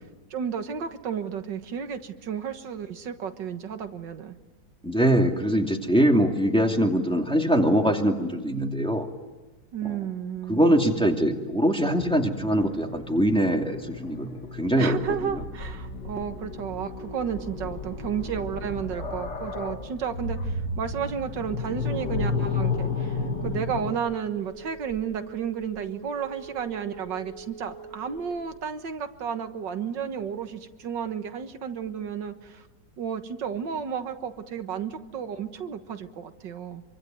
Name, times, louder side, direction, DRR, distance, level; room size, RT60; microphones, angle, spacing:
voice 1, 0.3-4.4 9.7-10.7 14.8-23.2 23.4-32.6 33.0-36.8, right 7 dB, 90° right, 8 dB, 2.1 m, -32 dB
voice 2, 4.8-9.1 9.9-10.0 10.5-15.0, equal, 5° left, 2 dB, 2.5 m, -23 dB
sound 1, 12.0-23.9, left 3 dB, 70° left, 2.7 m, -33 dB
Telephone, 21.8-28.6, right 5 dB, 25° left, 8.2 m, -44 dB
26.5 x 24.0 x 9.3 m, 1.2 s
omnidirectional pair, 1.9 m